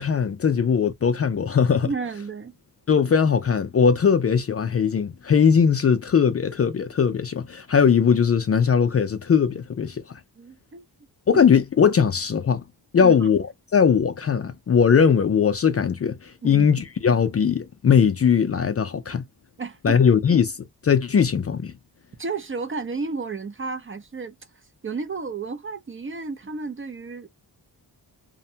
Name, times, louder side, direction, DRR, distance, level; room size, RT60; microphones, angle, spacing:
voice 1, 0.0-1.9 2.9-10.2 11.3-12.6 12.9-19.3 19.8-20.6 20.8-21.7, left 6 dB, 35° left, 0.4 m, -20 dB
voice 2, 1.8-2.5 10.4-10.9 11.3-11.4 13.0-13.1 16.4-16.7 19.6-20.0 22.2-24.4 24.8-27.3, right 4 dB, 30° right, 0.4 m, -32 dB
2.6 x 2.1 x 2.7 m
wide cardioid pair, 110°, 41 cm